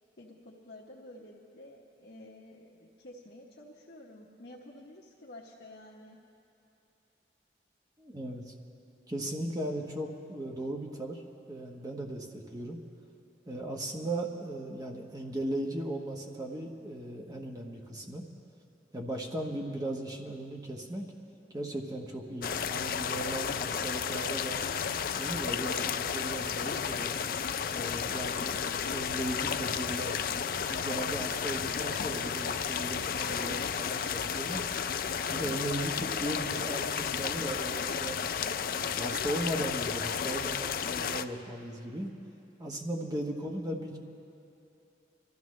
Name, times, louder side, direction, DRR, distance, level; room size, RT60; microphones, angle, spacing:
voice 1, 0.2-6.2 30.6-30.9, left 1 dB, 70° left, -5 dB, 1.0 m, -51 dB
voice 2, 8.0-8.5 9.1-12.8 13.5-18.2 18.9-21.1 21.5-24.6 25.2-27.1 27.7-28.6 28.9-30.2 30.7-34.6 35.3-38.2 38.7-42.1 42.6-44.0, right 1 dB, 20° right, 0 dB, 1.1 m, -37 dB
sound 1, 22.4-41.2, left 7 dB, 50° left, 0.3 m, -32 dB
24.0 x 13.0 x 3.2 m, 2.8 s
head